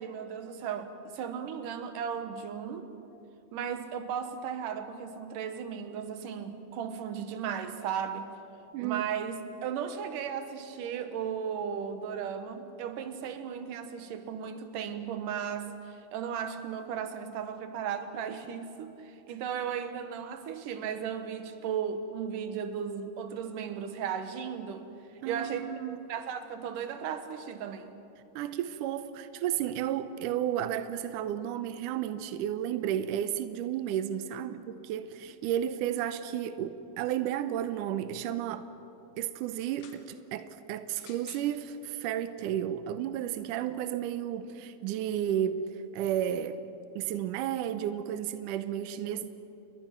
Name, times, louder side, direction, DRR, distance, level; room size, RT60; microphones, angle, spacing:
voice 1, 0.0-2.9 3.5-8.3 8.8-24.9 25.3-25.7 26.1-27.9 34.5-34.6, right 7 dB, 65° right, 2.5 m, -36 dB
voice 2, 8.7-9.1 25.2-26.1 28.4-38.7 39.2-45.6 45.9-46.6 47.0-49.3, right 10 dB, 85° right, 1.8 m, -32 dB
sound 1, 39.6-40.0 40.9-41.5 42.4-42.5, left 7 dB, 75° left, 3.7 m, -53 dB
29.0 x 22.0 x 6.0 m
omnidirectional pair, 4.7 m